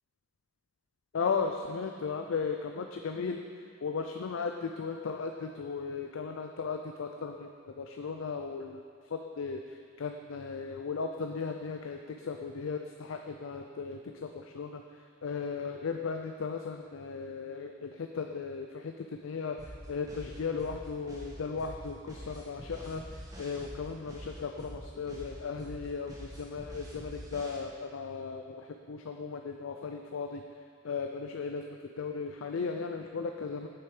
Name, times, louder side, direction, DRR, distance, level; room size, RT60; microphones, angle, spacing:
voice 1, 1.1-30.4 30.8-31.6 32.0-33.7, left 5 dB, 70° left, 4 dB, 0.5 m, -36 dB
sound 1, 19.6-27.6, equal, 15° right, 1.5 m, -45 dB
8.9 x 7.8 x 4.9 m, 2.2 s
head